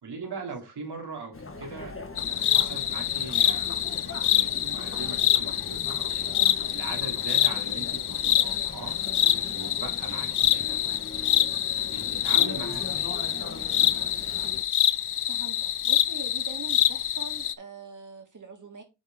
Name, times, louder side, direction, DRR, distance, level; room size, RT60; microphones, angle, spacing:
voice 1, 0.0-1.9 2.3-6.3 6.7-8.9 9.5-11.0 11.8-13.1 13.4-14.2, right 4 dB, 85° right, 2.8 m, -41 dB
Chatter, 1.3-14.6, left 3 dB, 35° left, 1.5 m, -41 dB
sound 1, 2.2-17.5, left 11 dB, 85° left, 0.6 m, -26 dB
voice 2, 15.2-18.8, right 4 dB, 50° right, 2.5 m, -43 dB
9.2 x 4.6 x 3.6 m
cardioid pair, 60°, 39 cm